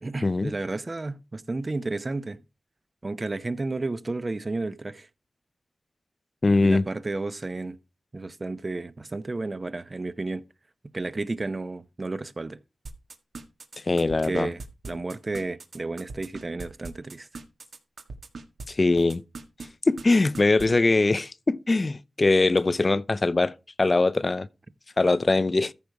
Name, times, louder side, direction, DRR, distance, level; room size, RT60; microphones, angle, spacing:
voice 1, 0.0-2.4 3.0-5.1 6.6-7.8 8.1-10.4 10.9-12.6 14.2-17.3, right 2 dB, 40° right, 0.8 m, -32 dB
voice 2, 6.4-6.8 13.9-14.5 18.7-19.2 19.9-24.5 25.0-25.7, left 3 dB, 40° left, 0.6 m, -22 dB
sound 1, 12.9-18.7 19.0-19.7 20.0-20.1 20.3-20.8, right 3 dB, 75° right, 1.6 m, -39 dB
14.0 x 5.3 x 4.7 m
cardioid pair, 60°, 0 cm